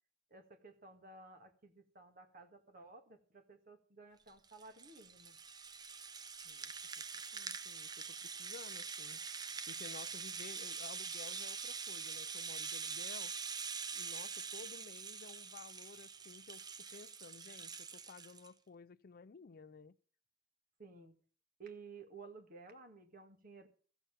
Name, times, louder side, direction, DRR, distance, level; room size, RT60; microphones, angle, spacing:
voice 1, 0.3-5.4 20.8-21.1 21.6-23.7, right 4 dB, 50° right, 1.8 m, -55 dB
Rattle (instrument), 4.3-18.5, right 5 dB, 20° right, 0.5 m, -44 dB
voice 2, 6.4-9.2 9.6-13.3 13.9-19.9, left 5 dB, 50° left, 0.5 m, -55 dB
14.5 x 7.1 x 7.1 m
head